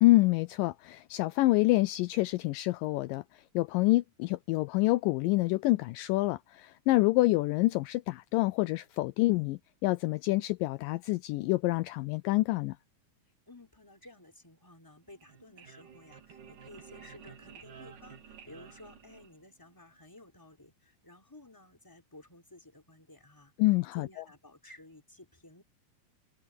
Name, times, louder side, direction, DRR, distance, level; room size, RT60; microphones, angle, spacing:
voice 1, 0.0-12.8 23.6-24.1, left 19 dB, 80° left, 2.1 m, -27 dB
voice 2, 13.5-25.6, left 2 dB, 5° left, 4.0 m, -54 dB
sound 1, 15.0-19.7, right 7 dB, 65° right, 4.4 m, -52 dB
omnidirectional pair, 4.1 m